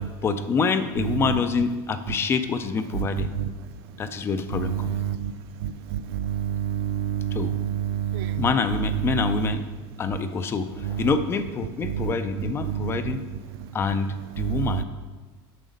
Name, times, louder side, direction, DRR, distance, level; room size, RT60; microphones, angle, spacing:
voice 1, 0.2-3.3 4.0-5.0 7.3-7.6 8.3-9.6 10.0-13.2 13.7-14.8, left 5 dB, 20° left, 10 dB, 0.3 m, -26 dB
voice 2, 4.8-5.3 5.6-8.4 12.7-12.9 14.4-14.7, right 10 dB, 75° right, 13 dB, 0.4 m, -28 dB
7.6 x 5.0 x 5.1 m, 1.3 s
supercardioid pair, 160°, 13 cm